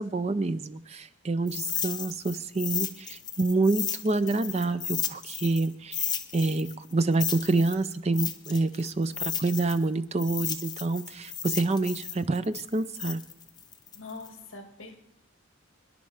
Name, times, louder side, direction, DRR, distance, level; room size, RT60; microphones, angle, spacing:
voice 1, 0.0-13.2, right 3 dB, 30° right, 0.4 m, -27 dB
sound 1, 1.5-5.7 5.9-9.8 10.2-14.3, left 8 dB, 20° left, 0.6 m, -34 dB
voice 2, 13.9-15.0, left 3 dB, 65° left, 2.0 m, -43 dB
24.5 x 10.5 x 3.4 m
head